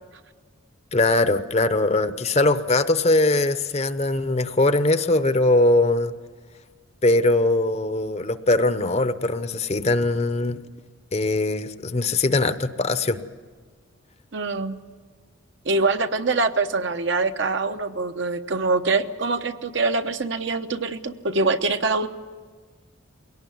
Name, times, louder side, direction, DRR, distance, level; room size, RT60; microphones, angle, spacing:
voice 1, 0.9-6.1 7.0-10.6 11.1-13.2, left 2 dB, 30° left, 11 dB, 0.7 m, -21 dB
voice 2, 14.3-14.8 15.6-22.1, right 3 dB, 60° right, 8 dB, 0.9 m, -24 dB
22.5 x 18.0 x 9.4 m, 1.5 s
head